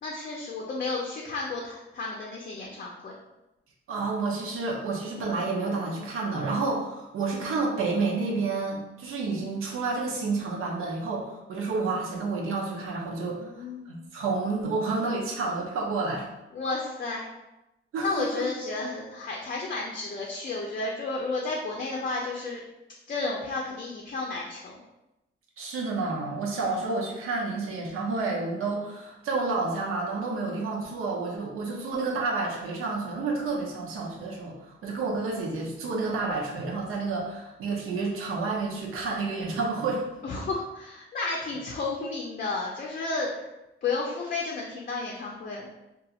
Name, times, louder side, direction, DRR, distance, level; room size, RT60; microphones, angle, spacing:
voice 1, 0.0-3.1 13.3-13.8 16.5-17.3 18.0-22.6 23.1-24.7 40.2-43.4 43.8-45.7, left 3 dB, 40° left, -2 dB, 0.4 m, -32 dB
voice 2, 3.9-16.3 17.9-18.5 25.6-40.0, right 3 dB, 90° right, -1 dB, 0.6 m, -30 dB
2.8 x 2.4 x 2.3 m, 0.96 s
cardioid pair, 95°, 21 cm